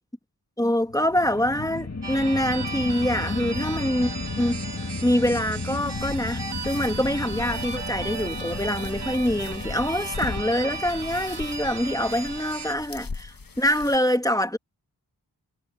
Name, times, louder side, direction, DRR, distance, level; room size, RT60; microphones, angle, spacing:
voice 1, 0.6-4.1 4.4-4.6 5.0-14.6, equal, 10° left, 1.5 m, -25 dB
sound 1, 0.8-13.2, left 3 dB, 40° left, 2.2 m, -35 dB
sound 2, 2.0-12.7, right 4 dB, 90° right, 2.1 m, -36 dB
sound 3, 5.8-13.9, left 4 dB, 60° left, 1.5 m, -39 dB
wide cardioid pair, 55°, 39 cm